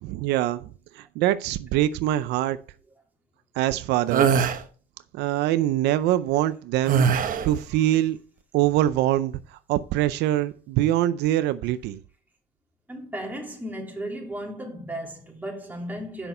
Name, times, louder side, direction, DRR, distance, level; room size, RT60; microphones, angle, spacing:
voice 1, 0.0-0.7 1.0-2.6 3.6-4.4 5.1-7.1 7.4-8.2 8.5-9.4 9.7-12.0, right 13 dB, 85° right, 0.5 m, -24 dB
sound 1, 4.1-4.6 6.9-7.6, right 7 dB, 55° right, 1.0 m, -21 dB
voice 2, 12.9-16.3, right 1 dB, 10° right, 3.0 m, -35 dB
8.0 x 6.0 x 5.4 m
cardioid pair, 110°, 17 cm